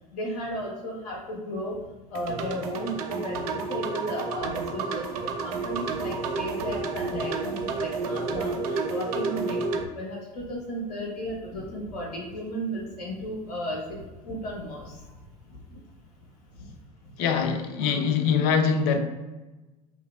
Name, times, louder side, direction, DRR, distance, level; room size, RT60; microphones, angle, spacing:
voice 1, 0.1-1.8 2.1-15.1 15.5-15.8, equal, 75° left, 1.2 m, -34 dB
sound 1, 2.1-9.8, right 4 dB, 65° right, 0.5 m, -31 dB
voice 2, 17.2-19.0, left 6 dB, 50° left, 0.6 m, -23 dB
4.7 x 2.9 x 2.4 m
hypercardioid pair, 75°, 20 cm